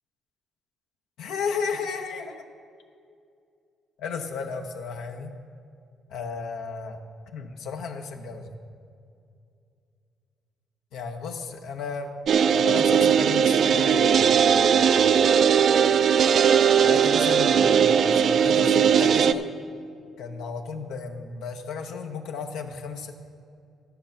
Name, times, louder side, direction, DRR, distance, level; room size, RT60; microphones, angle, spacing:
voice 1, 1.2-2.4 4.0-5.3 6.1-7.0 7.3-8.5 10.9-12.1 12.5-15.0 16.8-19.4 20.2-23.1, left 5 dB, 85° left, 4 dB, 0.9 m, -34 dB
sound 1, 12.3-19.3, right 7 dB, 60° right, 0.4 m, -19 dB
12.5 x 6.7 x 5.8 m, 2.4 s
cardioid pair, 90°, 0 cm